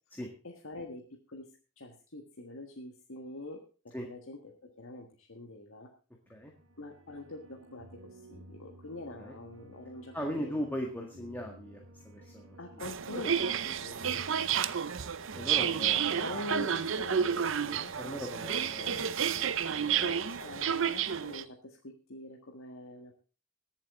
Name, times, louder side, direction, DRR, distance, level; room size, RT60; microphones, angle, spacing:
voice 1, 0.4-1.5 1.8-5.9 6.8-10.6 12.2-12.3 12.6-14.4 15.5-19.4 20.0-23.1, left 2 dB, 75° left, 1 dB, 1.7 m, -45 dB
sound 1, 6.2-19.7, right 1 dB, 85° right, 1.7 m, -54 dB
voice 2, 10.1-12.6 14.9-15.0 15.3-16.3 18.0-20.1 20.5-20.6, equal, 10° left, 1 dB, 1.8 m, -39 dB
sound 2, 12.8-21.4, right 8 dB, 65° right, 0.6 m, -31 dB
22.5 x 7.5 x 3.7 m, 0.35 s
head